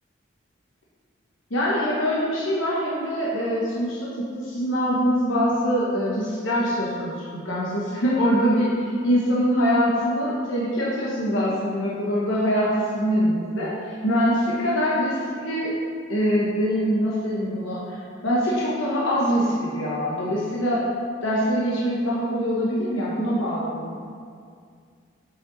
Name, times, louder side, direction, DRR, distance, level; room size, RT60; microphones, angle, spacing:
voice 1, 1.5-15.7 16.1-20.8 21.2-24.1, equal, 85° left, -6 dB, 1.1 m, -24 dB
7.6 x 5.2 x 3.9 m, 2.2 s
head